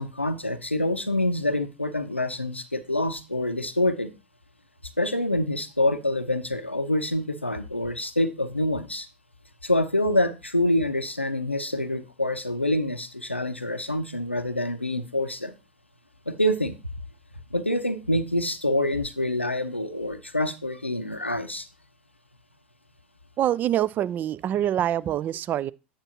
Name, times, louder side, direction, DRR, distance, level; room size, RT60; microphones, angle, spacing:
voice 1, 0.0-4.1 5.0-9.1 9.6-15.5 16.3-16.8 17.5-21.7, left 1 dB, 90° left, 0.6 m, -26 dB
voice 2, 23.4-25.7, right 11 dB, 30° right, 0.3 m, -25 dB
8.8 x 7.2 x 2.8 m
figure-of-eight pair, 85°, 6 cm